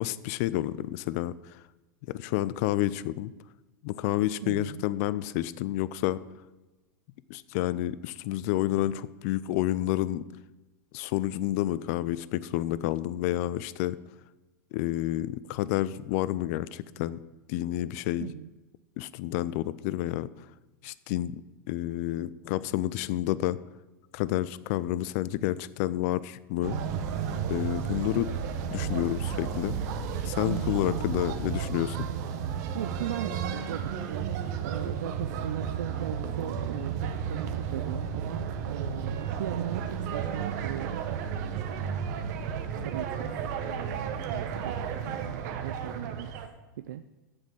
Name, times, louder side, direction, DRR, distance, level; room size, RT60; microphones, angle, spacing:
voice 1, 0.0-1.3 2.1-3.3 3.8-6.2 7.3-10.3 10.9-14.0 14.7-17.2 17.5-18.3 19.0-20.3 20.8-21.4 21.7-23.6 24.1-26.8 27.5-28.3 28.7-29.8 30.3-32.1, left 14 dB, 55° left, 17 dB, 0.5 m, -29 dB
voice 2, 4.4-4.9 18.2-18.5 30.2-31.0 32.7-41.1 42.8-43.2 43.7-46.3 46.8-47.0, right 11 dB, 75° right, 11 dB, 0.4 m, -38 dB
sound 1, 26.6-46.5, right 7 dB, 55° right, 1.1 m, -33 dB
8.5 x 7.3 x 6.3 m, 1.1 s
hypercardioid pair, 110°, 10 cm